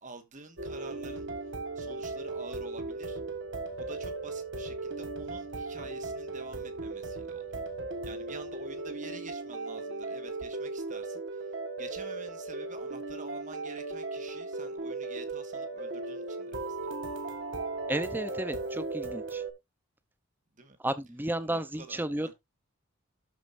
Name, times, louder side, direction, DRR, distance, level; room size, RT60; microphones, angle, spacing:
voice 1, 0.0-3.2 3.8-7.6 8.0-16.9 20.5-20.8 21.4-22.3, right 3 dB, 35° right, 1.7 m, -48 dB
sound 1, 0.6-19.5, right 3 dB, 55° right, 1.5 m, -37 dB
voice 2, 17.9-19.4 20.8-22.3, right 1 dB, 10° right, 0.6 m, -33 dB
12.5 x 5.0 x 2.6 m
head